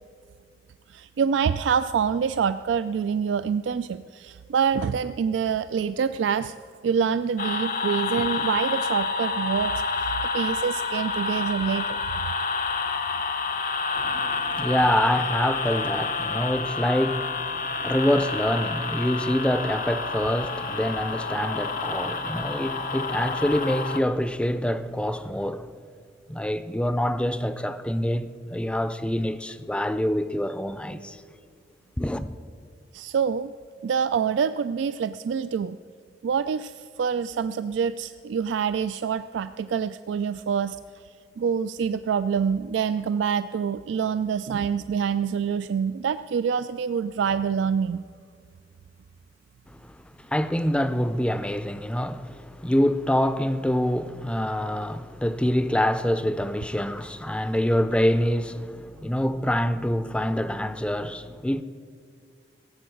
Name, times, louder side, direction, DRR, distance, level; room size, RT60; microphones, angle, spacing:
voice 1, 0.9-6.5 6.8-12.3 32.9-33.5 33.8-35.8 36.2-40.8 41.4-48.0, right 7 dB, 85° right, 0.3 m, -26 dB
sound 1, 7.4-24.0, left 4 dB, 45° left, 0.8 m, -29 dB
voice 2, 14.0-25.7 26.3-31.2 32.0-32.3 49.8-49.9 50.2-61.6, left 1 dB, 5° left, 0.5 m, -26 dB
16.5 x 7.7 x 7.7 m
head